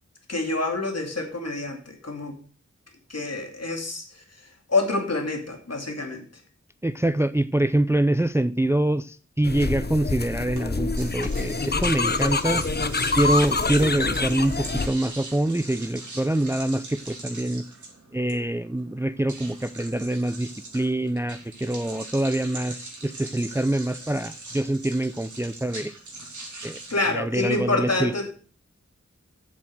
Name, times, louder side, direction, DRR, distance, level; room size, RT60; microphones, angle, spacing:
voice 1, 0.3-2.4 3.1-4.0 4.7-6.3 26.9-28.3, left 2 dB, 60° left, 3 dB, 2.4 m, -27 dB
voice 2, 6.8-12.6 13.2-17.6 18.1-25.9 26.6-26.8 27.1-28.1, right 1 dB, 10° right, 13 dB, 0.4 m, -25 dB
sound 1, 9.4-14.9, left 3 dB, 35° left, 0.7 m, -26 dB
sound 2, 10.5-26.9, right 2 dB, 90° right, 3.1 m, -41 dB
7.6 x 7.5 x 6.4 m, 0.41 s
wide cardioid pair, 75°, 29 cm